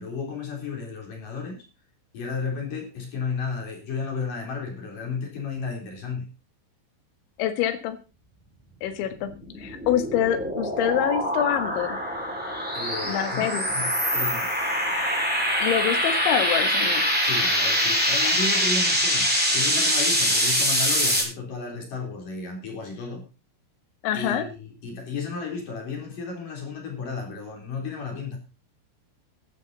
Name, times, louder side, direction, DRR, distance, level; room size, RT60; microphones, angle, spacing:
voice 1, 0.0-1.6 2.1-6.3 12.7-14.5 17.2-23.2 24.1-28.4, left 5 dB, 45° left, 2 dB, 4.9 m, -33 dB
voice 2, 7.4-8.0 8.8-9.3 9.6-12.0 13.0-13.7 15.6-17.1 24.0-24.5, left 10 dB, 75° left, 8 dB, 3.9 m, -26 dB
sound 1, 9.2-21.2, equal, ahead, 4.6 m, -24 dB
14.5 x 12.5 x 4.1 m, 0.31 s
omnidirectional pair, 5.6 m